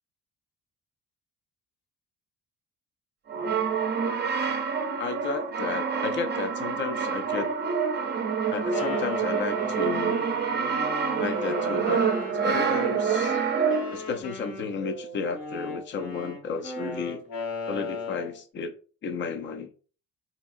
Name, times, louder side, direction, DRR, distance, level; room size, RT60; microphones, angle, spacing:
Brass instrument, 3.3-14.1, right 6 dB, 35° right, 0.5 m, -27 dB
voice 1, 5.0-7.5 8.5-10.3 11.2-12.0 12.4-13.4 13.9-17.2 17.7-18.7 19.0-19.7, left 5 dB, 35° left, 0.5 m, -32 dB
Wind instrument woodwind instrument, 8.5-13.2 13.7-18.4, left 2 dB, 75° left, 1.3 m, -37 dB
3.5 x 2.8 x 2.4 m
cardioid pair, 145°, 32 cm